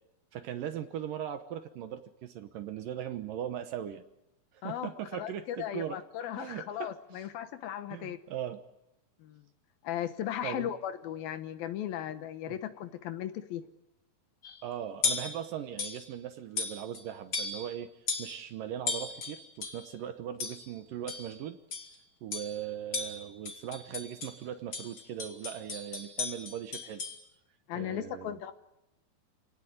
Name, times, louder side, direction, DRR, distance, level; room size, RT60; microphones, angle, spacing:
voice 1, 0.3-4.0 4.6-6.0 6.4-7.2 7.9-8.6 10.4-10.7 12.5-12.6 14.6-17.9 18.2-21.6 22.2-27.0 27.7-28.4, right 10 dB, 70° right, 10 dB, 2.4 m, -39 dB
voice 2, 4.6-8.2 9.2-9.4 9.8-13.6 27.7-28.5, left 11 dB, 70° left, 11 dB, 2.7 m, -37 dB
sound 1, 14.4-14.6 15.0-15.4 15.8-16.1 16.6-17.0 17.3-17.7 18.1-18.4 18.9-19.9 20.4-20.7 21.1-21.3 21.7-22.0 22.3-22.6 22.9-24.4 24.7-27.2, left 4 dB, 35° left, 2.7 m, -36 dB
28.0 x 18.5 x 9.6 m, 0.87 s
omnidirectional pair, 4.7 m